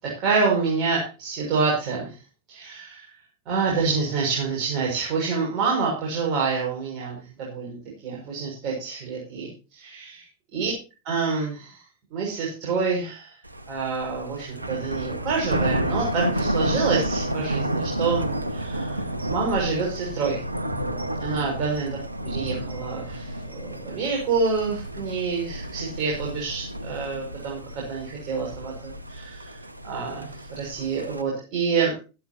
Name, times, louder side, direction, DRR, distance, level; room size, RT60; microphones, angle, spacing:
voice 1, 0.0-2.2 2.5-3.1 3.5-10.2 10.5-10.7 11.0-11.8 12.1-13.3 13.7-18.2 18.5-20.4 21.2-21.9 22.2-29.6 29.8-32.0, right 4 dB, 40° right, -2 dB, 6.4 m, -27 dB
Thunder, 13.4-31.2, right 1 dB, 85° right, 1.6 m, -31 dB
17.0 x 14.0 x 2.9 m, 0.33 s
figure-of-eight pair, 90°, 0 cm